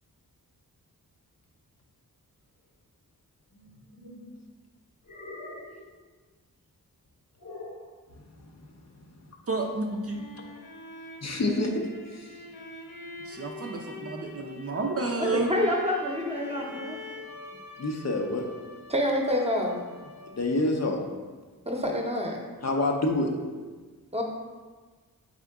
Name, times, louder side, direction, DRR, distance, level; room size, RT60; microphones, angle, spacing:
sound 1, 3.5-4.3 5.0-5.9 7.4-7.9, left 2 dB, 65° left, 1.0 m, -43 dB
voice 1, 9.5-10.2 13.3-15.5, right 3 dB, 40° right, 2 dB, 0.5 m, -30 dB
sound 2, 9.7-20.6, left 2 dB, 85° left, 0.7 m, -45 dB
voice 2, 11.2-12.4 17.8-18.5 20.3-21.0 22.6-23.3, left 2 dB, 45° left, 1 dB, 0.6 m, -27 dB
voice 3, 15.2-17.0 18.9-19.8 21.7-22.4 24.1-24.2, left 1 dB, 15° right, 0 dB, 0.8 m, -27 dB
3.6 x 3.6 x 3.5 m, 1.4 s
cardioid pair, 45°, 36 cm